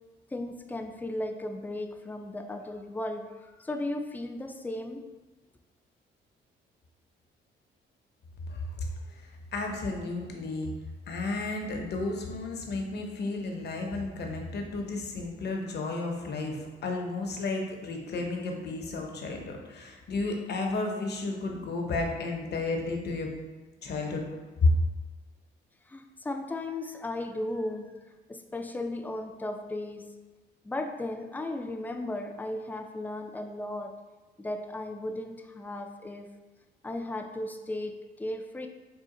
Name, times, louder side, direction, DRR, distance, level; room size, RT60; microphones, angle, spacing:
voice 1, 0.3-5.0 25.9-27.9 28.3-30.1 30.6-34.0 34.4-36.4 36.8-38.7, left 1 dB, 10° left, 4 dB, 0.3 m, -36 dB
voice 2, 8.5-10.7 11.1-23.4 23.8-24.2 24.6-24.7, left 3 dB, 55° left, 2 dB, 0.7 m, -32 dB
3.8 x 2.4 x 3.7 m, 1.2 s
cardioid pair, 90°, 20 cm